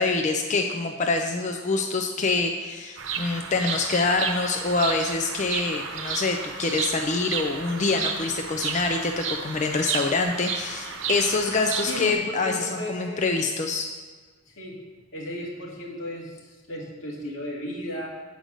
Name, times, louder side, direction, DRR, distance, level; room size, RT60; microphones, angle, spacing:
voice 1, 0.0-13.9, left 3 dB, 40° left, 3 dB, 0.5 m, -25 dB
Bird vocalization bird call bird song, 3.0-12.1, right 6 dB, 80° right, 0.8 m, -32 dB
voice 2, 11.9-12.2 12.4-13.3 14.5-14.8 15.1-18.1, left 1 dB, 90° left, -4 dB, 2.2 m, -35 dB
7.9 x 5.1 x 6.3 m, 1.4 s
head